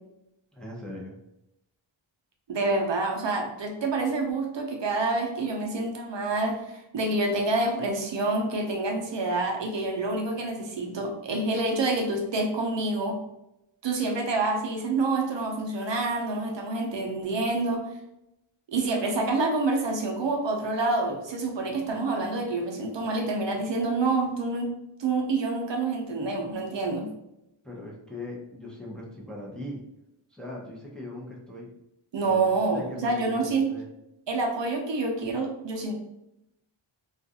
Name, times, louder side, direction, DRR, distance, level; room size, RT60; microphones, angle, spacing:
voice 1, 0.5-1.2 27.6-29.8 30.3-31.7 32.2-33.9, left 1 dB, ahead, -4 dB, 0.6 m, -40 dB
voice 2, 2.5-13.2 13.8-17.9 18.7-24.7 25.0-27.1 32.1-33.7 34.3-35.9, right 3 dB, 60° right, 2 dB, 0.6 m, -27 dB
2.4 x 2.2 x 2.7 m, 0.86 s
wide cardioid pair, 65°, 50 cm